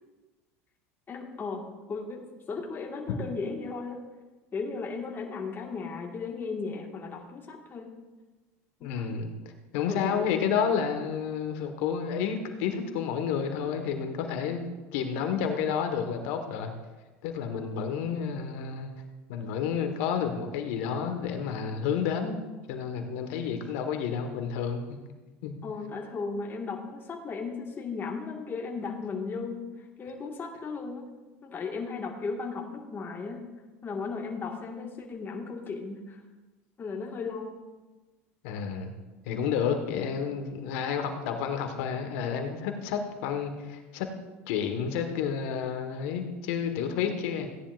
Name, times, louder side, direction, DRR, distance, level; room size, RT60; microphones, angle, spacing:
voice 1, 1.1-4.0 4.5-7.9 8.8-9.1 9.9-10.5 25.6-29.6 30.0-31.1 31.4-33.5 33.8-36.2 36.8-37.6, left 4 dB, 30° left, 0 dB, 1.9 m, -36 dB
voice 2, 8.8-9.3 9.7-14.6 14.9-16.7 17.2-18.9 19.3-22.4 22.7-25.0 25.4-25.5 38.4-38.9 39.3-44.1 44.5-47.5, left 7 dB, 75° left, 5 dB, 1.6 m, -30 dB
16.5 x 10.5 x 2.6 m, 1.2 s
supercardioid pair, 95°, 7 cm